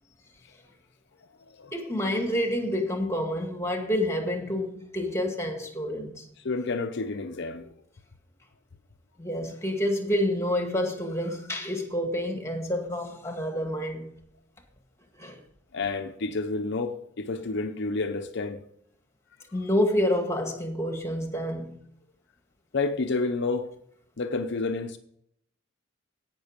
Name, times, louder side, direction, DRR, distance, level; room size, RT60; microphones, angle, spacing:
voice 1, 1.7-6.3 9.2-14.1 15.2-15.4 19.5-21.7, left 1 dB, 15° left, 1.9 m, -28 dB
voice 2, 6.4-7.7 15.7-18.6 22.7-23.7 24.2-25.0, left 3 dB, 60° left, 0.7 m, -30 dB
17.0 x 6.2 x 5.1 m
head